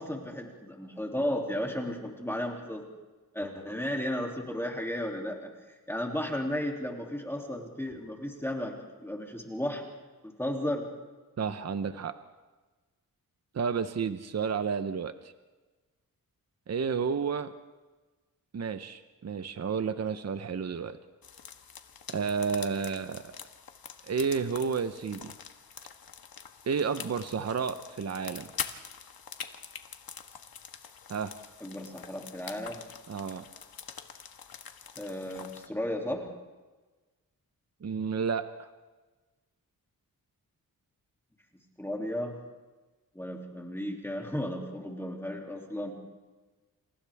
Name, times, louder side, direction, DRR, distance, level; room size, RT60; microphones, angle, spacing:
voice 1, 0.0-2.8 3.3-5.5 5.9-8.7 9.0-9.8 10.2-10.8 31.6-32.8 35.0-36.3 41.8-42.3 43.1-45.9, left 1 dB, 5° left, 0 dB, 2.7 m, -34 dB
voice 2, 11.4-12.2 13.5-15.3 16.7-17.5 18.5-21.0 22.1-23.3 24.1-25.3 26.7-28.5 31.1-31.3 33.1-33.5 37.8-38.7, right 6 dB, 45° right, 10 dB, 0.8 m, -31 dB
sound 1, 21.2-35.7, left 7 dB, 90° left, 1.5 m, -45 dB
28.5 x 28.0 x 3.5 m, 1.3 s
wide cardioid pair, 165°, 35 cm